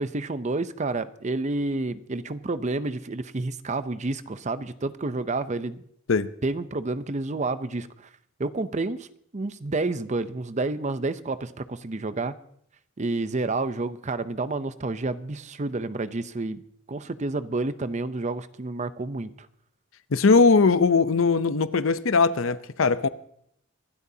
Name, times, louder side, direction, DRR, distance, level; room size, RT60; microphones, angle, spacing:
voice 1, 0.0-5.8 6.4-7.9 8.4-9.1 9.3-12.4 13.0-16.6 16.9-19.5, right 2 dB, 35° right, 0.6 m, -29 dB
voice 2, 20.1-23.1, left 4 dB, 75° left, 0.6 m, -20 dB
24.5 x 12.5 x 2.8 m
head